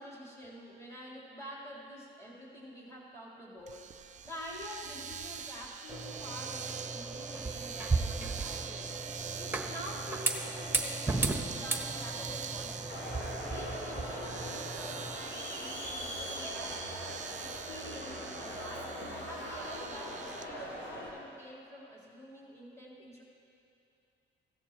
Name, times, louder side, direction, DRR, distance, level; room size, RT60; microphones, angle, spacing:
voice 1, 0.0-3.9 4.2-8.9 9.3-13.0 13.5-16.9 17.4-23.2, equal, 15° left, -5 dB, 3.5 m, -47 dB
Domestic sounds home sounds, 3.7-20.5, right 7 dB, 40° right, 0.5 m, -44 dB
sound 1, 5.9-15.2, right 3 dB, 10° right, 1.0 m, -36 dB
Crowd, 12.9-21.1, left 1 dB, 70° left, 3.4 m, -41 dB
16.0 x 13.5 x 3.0 m, 2.7 s
cardioid pair, 90°, 20 cm